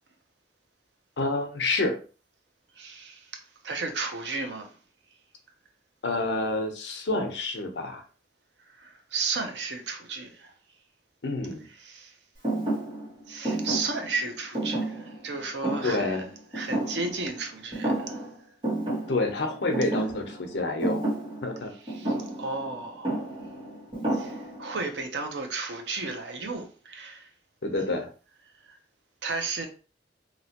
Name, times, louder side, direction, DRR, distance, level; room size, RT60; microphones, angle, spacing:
voice 1, 1.2-2.0 6.0-8.0 11.2-11.6 15.8-16.2 19.1-21.0 21.4-21.7 27.6-28.1, left 2 dB, 80° left, 0.8 m, -28 dB
voice 2, 2.8-3.3 3.6-4.7 8.8-10.5 11.8-12.1 13.3-16.3 16.5-18.2 21.9-23.2 24.1-27.3 28.7-28.8 29.2-29.7, right 4 dB, 85° right, 0.8 m, -33 dB
Thump thud, 12.4-17.4 17.7-18.3 18.6-24.8, right 1 dB, 30° right, 1.6 m, -31 dB
2.9 x 2.9 x 2.9 m
head